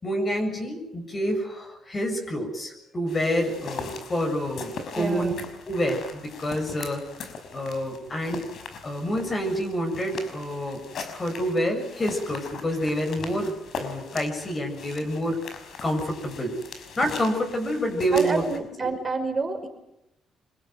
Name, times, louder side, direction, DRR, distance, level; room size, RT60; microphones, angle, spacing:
voice 1, 0.0-5.3 5.7-7.0 7.5-8.5 8.8-10.8 11.1-13.5 13.8-15.4 15.8-16.6 17.0-18.4 18.8-18.9, equal, 30° left, 3 dB, 7.2 m, -27 dB
sound 1, 3.1-18.6, left 5 dB, 65° left, 5.7 m, -40 dB
voice 2, 5.0-5.4 18.1-19.7, right 4 dB, 30° right, 6 dB, 5.5 m, -28 dB
26.0 x 22.0 x 9.4 m, 0.85 s
cardioid pair, 90°, 0 cm